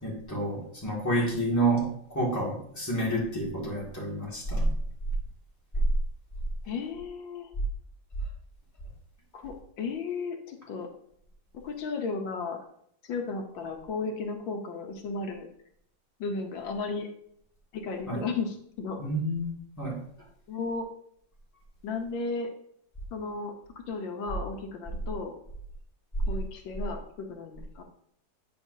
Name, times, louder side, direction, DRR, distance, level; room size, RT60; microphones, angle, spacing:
voice 1, 0.0-4.7 18.1-18.2 19.0-20.0, right 1 dB, 10° left, -5 dB, 1.9 m, -29 dB
voice 2, 6.6-7.5 9.3-10.9 11.5-12.6 13.0-15.5 16.2-17.1 17.7-19.0 20.5-20.9 21.8-22.5 23.1-23.5 23.9-25.3 26.3-27.8, left 4 dB, 85° left, 4 dB, 1.6 m, -34 dB
8.6 x 5.7 x 2.7 m, 0.67 s
omnidirectional pair, 2.0 m